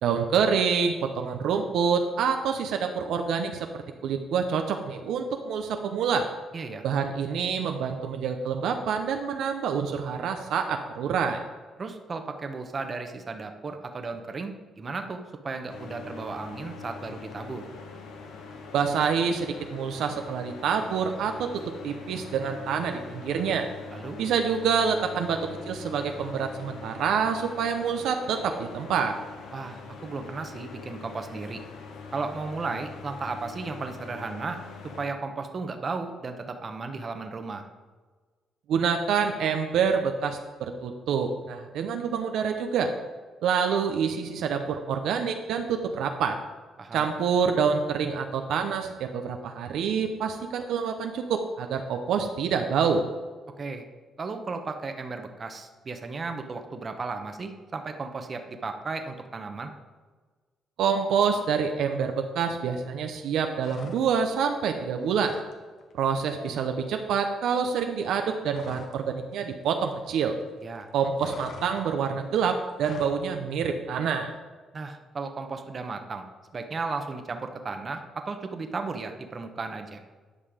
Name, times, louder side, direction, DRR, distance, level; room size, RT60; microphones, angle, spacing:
voice 1, 0.0-3.7 4.0-6.3 6.8-11.4 18.7-23.7 24.2-29.1 38.7-42.9 43.4-46.4 46.9-53.0 60.8-65.4 66.0-70.4 70.9-74.3, right 6 dB, 80° right, 5 dB, 0.7 m, -27 dB
voice 2, 6.5-6.8 11.8-17.7 23.9-24.2 29.5-31.6 32.1-34.6 35.0-37.6 46.8-47.1 53.6-53.8 54.2-59.7 70.6-70.9 74.7-76.3 76.5-80.0, right 4 dB, 40° right, 6 dB, 1.0 m, -35 dB
sound 1, 15.7-35.1, left 4 dB, 85° left, 1.2 m, -43 dB
sound 2, 63.5-64.4 64.7-65.5 65.8-66.0 66.3-69.1 69.3-70.4 70.7-73.2, left 4 dB, 60° left, 1.2 m, -46 dB
10.0 x 5.5 x 5.0 m, 1.4 s
cardioid pair, 90°, 0 cm